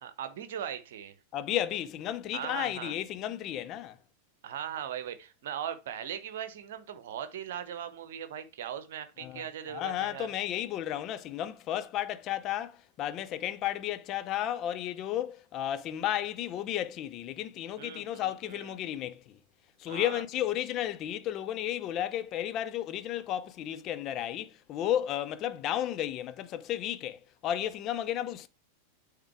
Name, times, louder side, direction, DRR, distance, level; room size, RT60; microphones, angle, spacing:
voice 1, 0.0-1.2 2.3-3.0 4.4-10.3 17.8-18.8 19.9-20.2, right 9 dB, 55° right, 1.0 m, -39 dB
voice 2, 1.3-4.0 9.2-9.4 9.7-19.4 19.8-28.5, left 11 dB, 35° left, 0.7 m, -33 dB
8.8 x 3.7 x 4.6 m
figure-of-eight pair, 90°, 0 cm